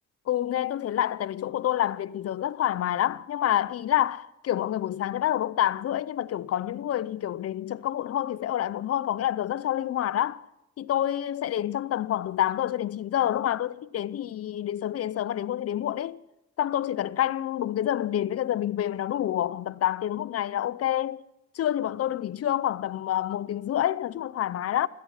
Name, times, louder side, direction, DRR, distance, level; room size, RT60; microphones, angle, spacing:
voice 1, 0.3-10.4 10.8-16.2 16.6-21.2 21.5-24.9, left 11 dB, 55° left, 0.6 m, -28 dB
16.5 x 13.0 x 5.7 m
cardioid pair, 90°, 30 cm